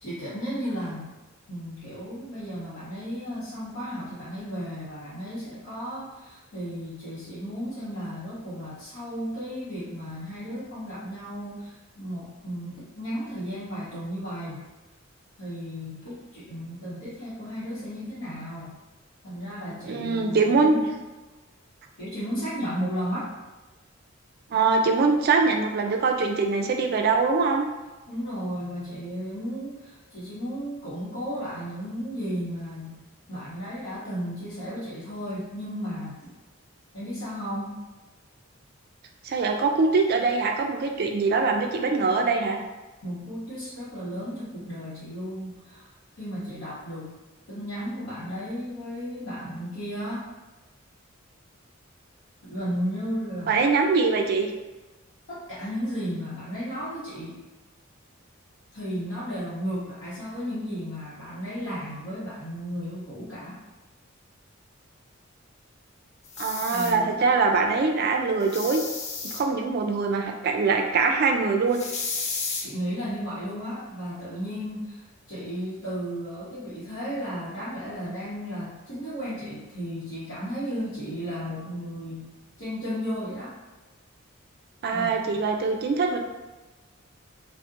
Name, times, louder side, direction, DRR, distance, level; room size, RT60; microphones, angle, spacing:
voice 1, 0.0-1.1 1.5-14.7 15.4-18.8 19.2-20.8 22.0-23.3 28.1-33.0 33.3-36.3 36.9-37.7 43.0-45.9 46.2-47.2 47.5-50.3 52.4-53.6 55.3-57.4 58.7-63.6 66.7-67.2 72.6-83.5 84.9-85.1, equal, 75° left, -13 dB, 0.9 m, -34 dB
voice 2, 19.9-20.8 24.5-27.7 39.2-42.6 53.5-54.5 66.4-68.8 69.2-71.8 84.8-86.2, right 4 dB, 50° right, 3 dB, 0.3 m, -23 dB
sound 1, 66.2-66.9 68.4-69.4 71.7-72.6, left 4 dB, 35° left, 0.3 m, -32 dB
2.6 x 2.1 x 2.4 m, 1.2 s
head